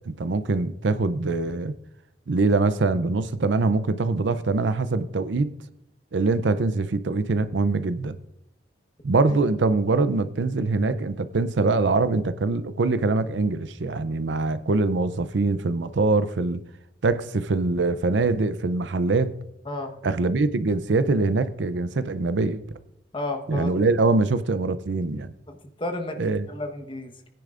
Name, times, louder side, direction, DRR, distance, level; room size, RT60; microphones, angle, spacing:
voice 1, 0.1-1.7 2.3-5.5 6.1-8.2 9.0-16.6 17.0-19.3 20.0-22.6 23.5-25.3 26.2-26.5, right 3 dB, 75° right, 0.6 m, -23 dB
voice 2, 23.1-23.7 25.5-26.2 26.5-27.1, left 2 dB, 30° left, 1.2 m, -32 dB
19.5 x 10.0 x 2.5 m
head